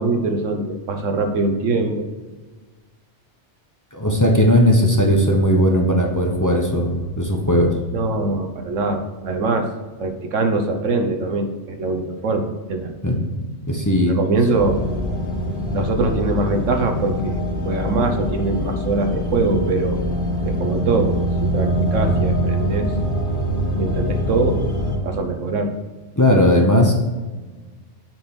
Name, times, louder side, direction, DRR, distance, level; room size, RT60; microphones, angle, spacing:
voice 1, 0.0-2.1 7.9-9.7 10.0-12.9 14.1-14.8 15.7-20.0 20.5-21.2 21.4-22.9 23.8-24.6 25.0-25.7, right 3 dB, 85° right, 5 dB, 1.4 m, -22 dB
voice 2, 3.9-7.7 13.0-13.3 13.7-14.2 26.2-26.9, equal, 15° left, 0 dB, 1.1 m, -17 dB
sound 1, 14.5-25.0, equal, 45° left, 1.8 m, -23 dB
7.5 x 5.9 x 6.3 m, 1.3 s
omnidirectional pair, 1.3 m